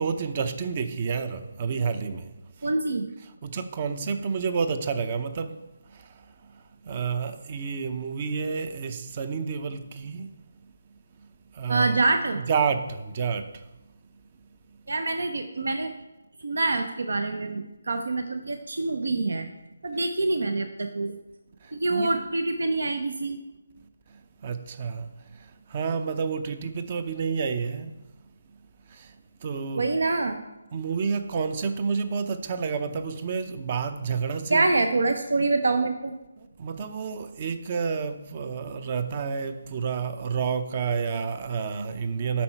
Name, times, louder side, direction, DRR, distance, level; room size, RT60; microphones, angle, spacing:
voice 1, 0.0-2.3 3.4-5.5 6.9-10.3 11.6-12.0 12.5-13.5 21.9-22.2 24.4-25.1 25.7-27.9 29.4-29.8 30.7-34.7 36.6-42.4, right 5 dB, 35° right, 0.6 m, -29 dB
voice 2, 2.6-3.1 11.7-12.4 14.9-15.9 16.4-19.5 19.8-21.2 21.7-23.4 29.7-30.4 34.5-36.1, right 3 dB, 75° right, 0.7 m, -25 dB
8.5 x 5.7 x 4.5 m
figure-of-eight pair, 160°, 0 cm